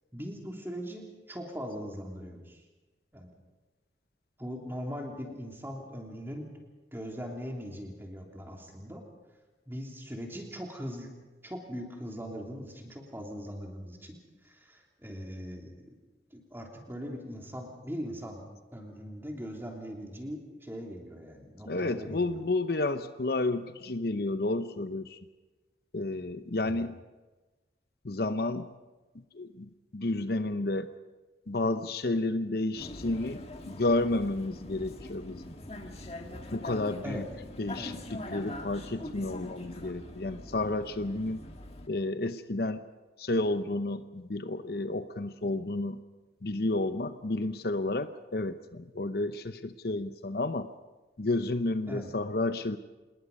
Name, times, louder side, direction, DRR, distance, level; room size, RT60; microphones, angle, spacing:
voice 1, 0.1-2.6 3.1-3.3 4.4-6.5 6.9-9.0 9.7-11.1 11.4-14.2 14.4-16.0 16.3-18.4 18.7-22.3 26.6-26.7 37.0-37.2 37.8-38.0 51.9-52.1, equal, 10° right, 1 dB, 3.2 m, -40 dB
voice 2, 21.6-25.2 25.9-27.0 28.0-28.7 29.3-30.9 31.5-35.5 36.5-37.3 37.6-41.4 41.9-42.8 43.2-46.0 46.4-50.7 51.2-52.8, left 2 dB, 55° left, 10 dB, 0.8 m, -31 dB
Vehicle, 32.8-41.9, left 1 dB, 35° left, 1.7 m, -43 dB
27.0 x 20.5 x 5.4 m, 1.2 s
head